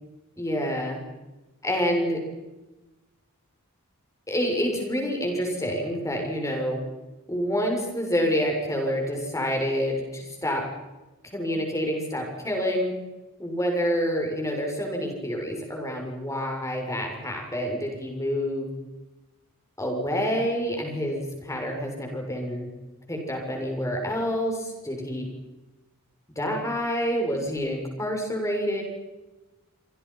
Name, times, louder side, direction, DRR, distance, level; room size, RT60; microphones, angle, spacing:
voice 1, 0.4-1.0 1.6-2.2 4.3-6.8 7.3-10.6 11.3-12.9 13.4-18.7 19.8-22.7 23.1-25.3 26.3-28.8, equal, 15° left, 1 dB, 6.7 m, -27 dB
27.5 x 26.0 x 5.8 m, 1.1 s
head